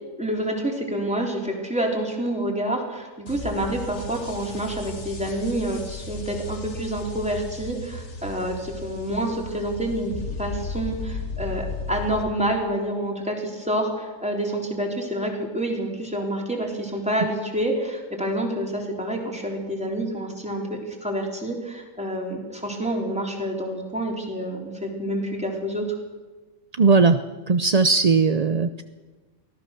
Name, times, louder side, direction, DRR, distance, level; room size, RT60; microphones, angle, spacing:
voice 1, 0.2-10.1 10.4-25.8, right 1 dB, 5° right, -1 dB, 4.1 m, -28 dB
sound 1, 3.3-12.2, left 3 dB, 55° left, 2.1 m, -35 dB
voice 2, 26.8-27.2 27.5-28.8, right 4 dB, 45° right, 9 dB, 0.5 m, -18 dB
23.5 x 17.5 x 6.9 m, 1.3 s
omnidirectional pair, 1.5 m